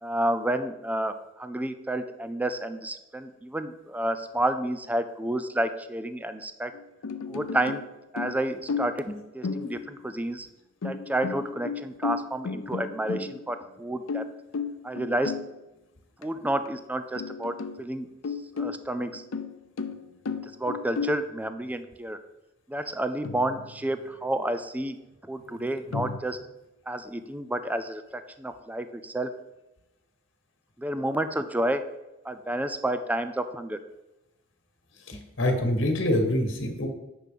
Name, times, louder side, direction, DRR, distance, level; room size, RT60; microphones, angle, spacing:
voice 1, 0.0-6.7 7.3-7.9 8.1-9.1 9.3-10.5 10.8-14.3 14.8-15.3 16.2-18.1 18.6-19.2 20.4-22.2 22.7-25.0 25.3-26.4 26.9-29.3 30.8-31.8 32.2-33.8, right 1 dB, 10° right, 10 dB, 0.4 m, -30 dB
sound 1, 6.7-7.9 8.2-9.1 9.4-10.1 10.8-13.6 14.1-15.5 16.2-16.3 16.7-16.8 17.1-17.8 18.2-21.3 23.2-24.0 25.9-26.2, left 5 dB, 85° left, 0.6 m, -34 dB
voice 2, 35.1-36.9, left 1 dB, 65° left, 4 dB, 1.7 m, -25 dB
8.4 x 6.1 x 5.1 m, 0.99 s
head